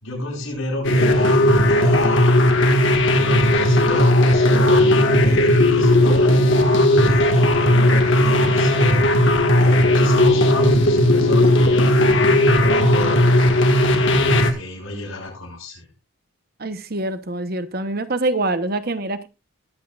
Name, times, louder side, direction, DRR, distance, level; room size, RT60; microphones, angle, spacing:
voice 1, 0.0-2.4 3.1-6.4 6.9-9.1 9.6-13.3 14.1-15.9, left 1 dB, 85° left, -1 dB, 6.9 m, -29 dB
sound 1, 0.8-14.5, left 1 dB, 60° left, 1.8 m, -16 dB
voice 2, 16.6-19.3, right 2 dB, 45° right, 11 dB, 1.0 m, -25 dB
20.5 x 8.5 x 2.5 m, 0.26 s
head